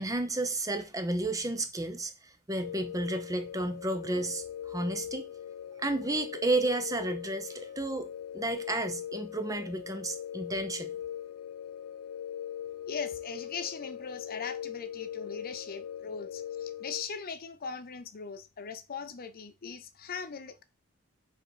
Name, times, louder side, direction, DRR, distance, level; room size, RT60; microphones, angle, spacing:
voice 1, 0.0-2.1 2.5-5.3 5.8-11.0, right 2 dB, 15° right, 0.6 m, -32 dB
sound 1, 2.6-17.0, left 10 dB, 85° left, 0.4 m, -40 dB
voice 2, 12.8-20.6, left 5 dB, 40° left, 0.6 m, -40 dB
4.5 x 4.4 x 5.0 m
head